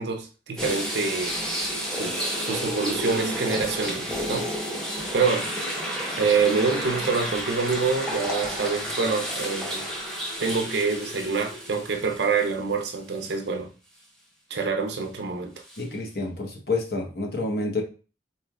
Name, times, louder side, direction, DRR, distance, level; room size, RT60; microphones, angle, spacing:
voice 1, 0.0-1.4 1.9-4.5 5.1-5.5 6.2-9.8 10.4-13.7 14.5-15.5, right 4 dB, 75° right, 0.5 m, -26 dB
sound 1, 0.6-12.8 13.2-13.3 15.7-15.8, equal, 5° left, 0.9 m, -31 dB
voice 2, 15.8-17.8, left 2 dB, 60° left, 0.9 m, -28 dB
4.2 x 3.2 x 2.3 m
head